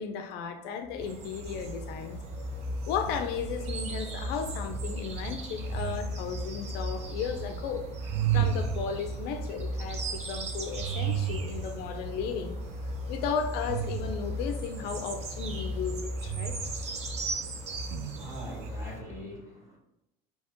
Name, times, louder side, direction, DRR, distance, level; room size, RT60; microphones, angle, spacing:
voice 1, 0.0-2.2 2.9-7.9 8.3-12.6 13.1-16.6, left 6 dB, 65° left, 6 dB, 0.5 m, -35 dB
sound 1, 0.8-19.2, left 1 dB, 15° left, 0.5 m, -38 dB
sound 2, 1.0-19.0, right 4 dB, 40° right, 0.7 m, -43 dB
sound 3, 1.0-18.7, right 9 dB, 80° right, 0.4 m, -37 dB
voice 2, 17.9-19.8, equal, 15° right, -2 dB, 1.5 m, -43 dB
4.1 x 2.8 x 3.6 m, 0.84 s
supercardioid pair, 110°, 18 cm